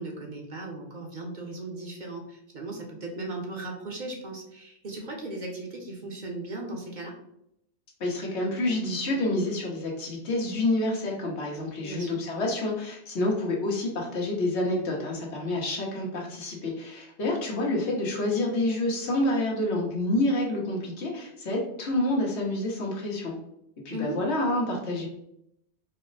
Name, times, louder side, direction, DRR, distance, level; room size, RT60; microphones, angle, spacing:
voice 1, 0.0-7.2 11.8-12.2 23.9-24.2, right 2 dB, 50° right, 0 dB, 0.8 m, -37 dB
voice 2, 8.0-23.3 23.8-25.1, left 1 dB, 80° left, -2 dB, 1.3 m, -28 dB
4.2 x 2.0 x 3.9 m, 0.76 s
omnidirectional pair, 1.1 m